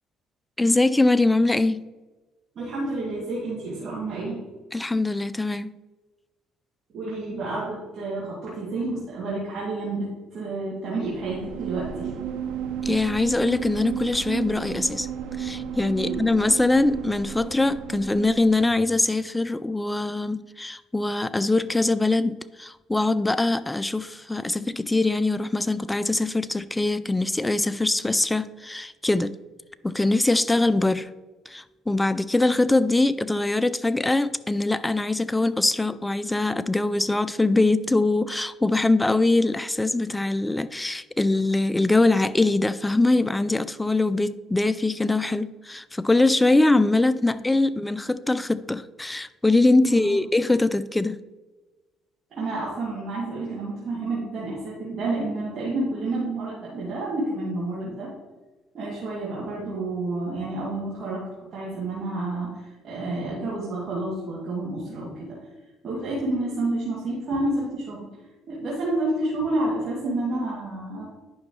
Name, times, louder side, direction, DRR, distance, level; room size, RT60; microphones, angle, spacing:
voice 1, 0.6-1.9 4.7-5.7 12.8-15.1 15.4-29.3 29.8-31.1 31.5-51.2, left 2 dB, 10° left, 0.4 m, -22 dB
voice 2, 2.5-4.4 6.9-12.1 16.0-16.3 47.3-47.5 49.8-50.2 52.3-58.1 58.7-65.4 65.8-68.0 68.5-71.1, right 2 dB, 55° right, 2.6 m, -29 dB
sound 1, 11.0-18.9, right 8 dB, 70° right, 0.6 m, -33 dB
10.0 x 6.1 x 3.2 m
hypercardioid pair, 60°, 0 cm